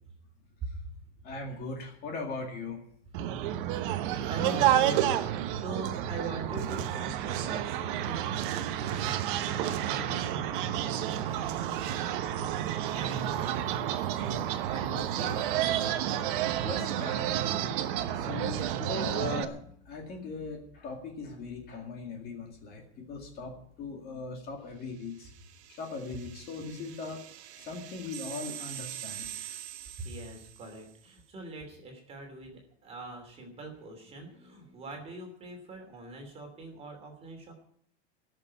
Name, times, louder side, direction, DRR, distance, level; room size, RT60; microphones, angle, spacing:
voice 1, 1.2-2.8 16.3-16.4 16.6-17.7 18.1-25.3 25.7-27.2 27.6-29.3, left 3 dB, 25° left, 1 dB, 2.1 m, -39 dB
sound 1, 3.1-19.5, right 11 dB, 50° right, 1.1 m, -30 dB
voice 2, 4.2-13.7 14.1-15.3 30.0-37.5, right 2 dB, 15° right, 3 dB, 2.9 m, -42 dB
sound 2, 25.0-30.9, right 11 dB, 70° right, 1.4 m, -44 dB
16.5 x 6.7 x 9.6 m, 0.67 s
supercardioid pair, 170°, 34 cm